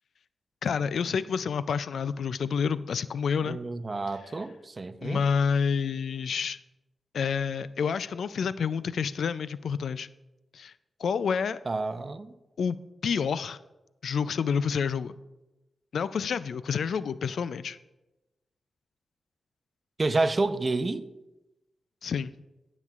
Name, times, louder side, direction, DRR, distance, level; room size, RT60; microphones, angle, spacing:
voice 1, 0.6-3.6 5.0-6.6 7.1-10.1 10.5-10.7 11.0-11.6 12.6-13.6 14.0-15.2 15.9-17.8 22.0-22.3, left 6 dB, 80° left, 0.3 m, -28 dB
voice 2, 3.4-5.2 11.7-12.3 20.0-21.0, right 3 dB, 40° right, 0.7 m, -29 dB
16.0 x 7.2 x 2.4 m
cardioid pair, 55°, 0 cm